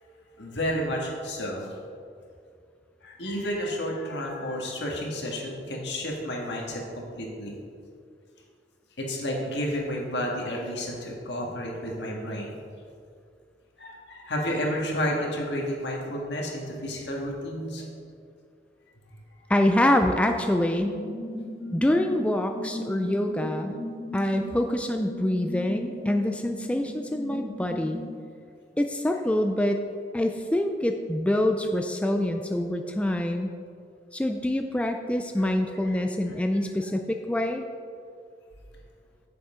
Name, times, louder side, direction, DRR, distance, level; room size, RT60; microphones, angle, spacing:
voice 1, 0.4-1.7 3.0-7.5 9.0-12.5 13.8-17.8 26.0-26.1 35.8-36.0, equal, 75° left, -1 dB, 1.7 m, -31 dB
voice 2, 19.5-21.0 21.7-23.8 24.1-28.0 28.8-29.8 30.1-33.5 34.1-37.7, left 1 dB, 5° left, 5 dB, 0.3 m, -25 dB
sound 1, 20.8-28.1, left 1 dB, 50° right, 2.2 m, -38 dB
7.9 x 6.7 x 4.9 m, 2.3 s
head